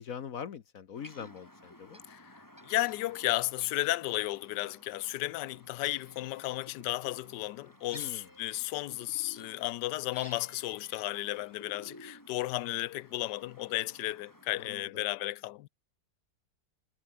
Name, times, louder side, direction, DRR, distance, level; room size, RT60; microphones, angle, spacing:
voice 1, 0.0-2.0 7.9-8.3 14.6-14.9, left 7 dB, 55° left, 1.4 m, -42 dB
sound 1, 0.9-14.8, left 1 dB, 10° left, 5.1 m, -54 dB
voice 2, 2.6-15.7, left 17 dB, 85° left, 1.2 m, -34 dB
omnidirectional pair, 1.8 m